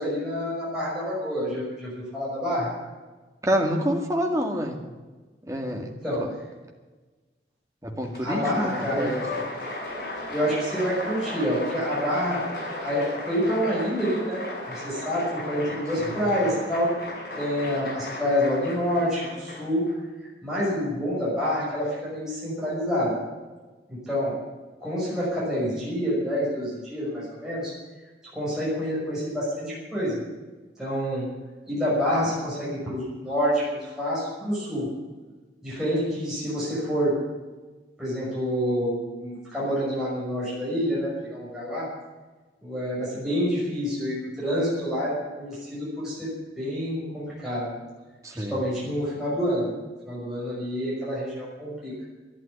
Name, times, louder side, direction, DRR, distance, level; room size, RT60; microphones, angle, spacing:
voice 1, 0.0-2.7 6.0-6.2 8.2-9.2 10.3-12.4 12.8-16.9 17.4-19.8 20.2-23.2 23.9-24.4 24.8-27.7 28.3-30.1 30.8-31.3 31.7-34.9 35.6-37.1 38.0-41.9 42.6-47.7 48.3-49.7 50.0-51.9, equal, 5° right, -9 dB, 6.3 m, -27 dB
voice 2, 3.4-4.8 5.5-5.9 6.2-6.3 7.8-9.5 16.0-16.2 48.2-48.6, equal, 20° right, 2 dB, 2.1 m, -28 dB
Applause, 8.0-19.9, left 1 dB, 65° left, 6.4 m, -35 dB
12.0 x 11.5 x 9.9 m, 1.2 s
head